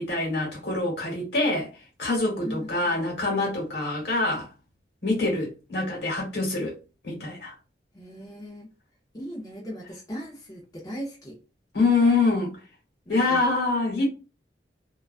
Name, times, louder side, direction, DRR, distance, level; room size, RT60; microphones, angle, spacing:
voice 1, 0.0-1.7 2.0-4.5 5.0-6.8 7.0-7.5 11.7-12.5 13.1-14.1, left 3 dB, 70° left, 1.1 m, -25 dB
voice 2, 2.4-3.0 4.2-4.4 7.9-8.7 9.1-11.4 13.1-13.4, equal, 20° left, 0.5 m, -38 dB
2.3 x 2.2 x 2.3 m
head